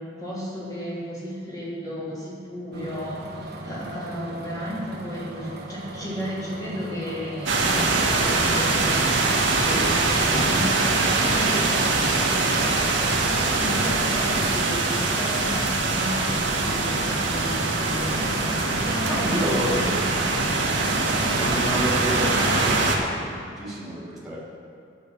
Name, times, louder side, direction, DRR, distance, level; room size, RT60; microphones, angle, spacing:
voice 1, 0.0-12.7 13.4-20.4, equal, 20° left, -7 dB, 3.3 m, -34 dB
sound 1, 2.7-21.9, right 1 dB, 60° right, 1.5 m, -37 dB
sound 2, 7.5-23.0, right 3 dB, 80° right, 1.7 m, -23 dB
voice 2, 19.1-20.0 21.4-24.4, equal, ahead, -7 dB, 3.1 m, -30 dB
11.5 x 8.7 x 6.3 m, 2.3 s
head